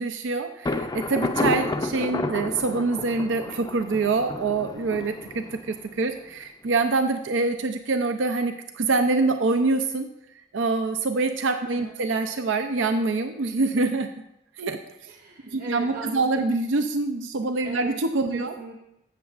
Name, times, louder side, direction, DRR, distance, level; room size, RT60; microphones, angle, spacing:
voice 1, 0.0-10.1 10.5-14.1 14.6-15.1 15.4-18.5, right 3 dB, 85° right, 7 dB, 0.5 m, -25 dB
Thunder, 0.6-6.3, left 2 dB, 20° left, 0.5 m, -31 dB
voice 2, 15.1-16.5 17.6-18.0 18.3-18.7, right 2 dB, 50° right, -2 dB, 1.2 m, -39 dB
15.5 x 7.0 x 2.4 m, 0.84 s
head